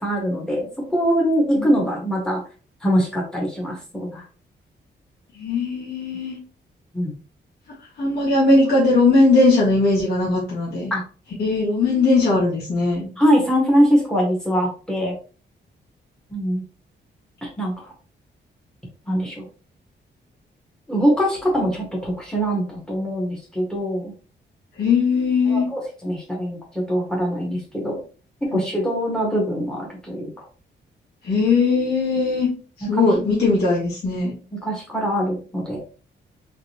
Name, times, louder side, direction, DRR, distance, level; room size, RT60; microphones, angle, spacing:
voice 1, 0.0-2.4 2.8-4.2 6.9-7.1 10.9-11.0 13.2-15.1 16.3-16.6 17.4-17.9 19.1-19.5 20.9-24.1 25.5-28.0 28.4-30.5 32.8-33.1 34.6-35.8, equal, 5° left, -2 dB, 1.8 m, -23 dB
voice 2, 5.4-6.4 8.0-10.9 11.4-13.1 24.8-25.7 28.5-28.7 31.2-32.5 32.9-34.3, left 3 dB, 60° left, -6 dB, 1.9 m, -19 dB
3.9 x 3.8 x 3.0 m, 0.38 s
wide cardioid pair, 150°, 19 cm